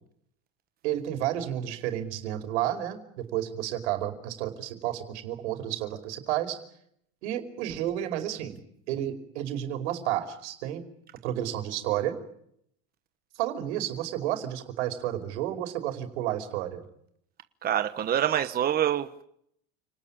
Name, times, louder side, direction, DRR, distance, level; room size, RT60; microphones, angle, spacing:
voice 1, 0.8-6.6 7.2-8.6 8.9-10.8 11.2-12.2 13.4-16.8, right 12 dB, 80° right, 7 dB, 5.2 m, -31 dB
voice 2, 17.6-19.2, right 10 dB, 25° right, 9 dB, 1.2 m, -26 dB
29.5 x 19.5 x 8.9 m, 0.74 s
supercardioid pair, 130°, 34 cm